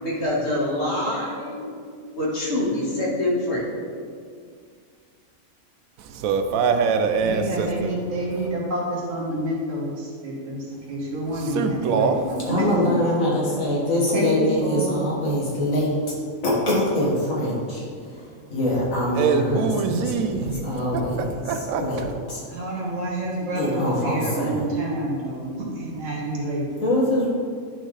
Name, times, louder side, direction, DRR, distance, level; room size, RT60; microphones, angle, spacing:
voice 1, 0.0-1.7 2.2-3.6, left 1 dB, 55° left, 1.9 m, -25 dB
voice 2, 6.1-7.9 11.5-12.2 19.1-20.6 20.9-21.0 21.4-22.1, right 5 dB, 90° right, 1.0 m, -23 dB
voice 3, 7.2-13.0 14.1-15.1 22.5-26.7, right 1 dB, 70° right, 1.7 m, -28 dB
voice 4, 12.5-15.9 16.4-22.4 23.6-24.6 26.8-27.3, left 1 dB, 85° left, 2.1 m, -24 dB
10.5 x 4.4 x 3.3 m
omnidirectional pair, 1.4 m